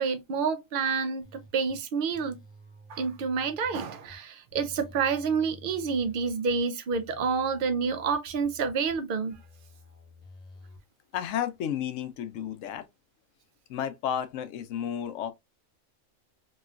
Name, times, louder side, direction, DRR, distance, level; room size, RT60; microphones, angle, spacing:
voice 1, 0.0-2.4 2.9-9.4, right 5 dB, 60° right, 0.6 m, -28 dB
sound 1, 1.2-1.8 2.1-4.2 4.5-6.6 6.9-9.0 9.3-10.8, left 2 dB, 35° left, 1.0 m, -51 dB
voice 2, 11.1-12.9 13.7-15.3, left 9 dB, 75° left, 0.9 m, -32 dB
3.1 x 3.0 x 2.3 m
omnidirectional pair, 1.4 m